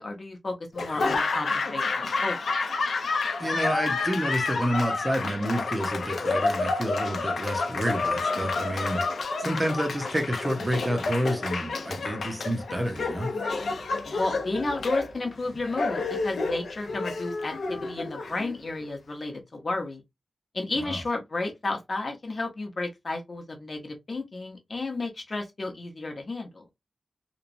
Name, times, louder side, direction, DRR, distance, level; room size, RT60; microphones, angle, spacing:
voice 1, 0.0-2.4 9.4-9.7 14.2-20.0 20.5-26.6, left 2 dB, 40° left, 0.7 m, -32 dB
Laughter / Applause, 0.7-18.8, left 3 dB, 90° left, 0.5 m, -29 dB
voice 2, 3.4-13.3 20.8-21.0, equal, 15° right, 0.6 m, -29 dB
2.9 x 2.2 x 2.5 m
wide cardioid pair, 135°, 0 cm